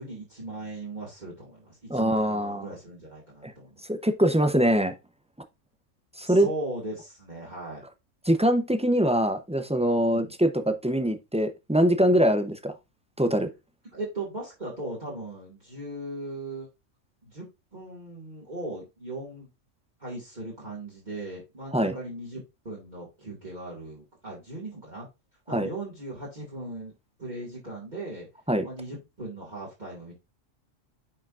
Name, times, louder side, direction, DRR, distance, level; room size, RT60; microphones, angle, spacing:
voice 1, 0.0-3.8 6.2-7.9 10.1-10.3 13.9-16.7 17.2-19.5 20.0-25.1 25.5-26.9 27.2-28.3 28.6-30.1, right 2 dB, 35° right, 2.3 m, -38 dB
voice 2, 1.9-2.7 3.4-3.5 3.9-4.9 6.2-6.5 8.3-12.7 13.2-13.5 21.7-21.9 25.5-25.7 28.5-28.7, equal, 10° right, 0.4 m, -23 dB
9.5 x 5.0 x 2.5 m
omnidirectional pair, 1.4 m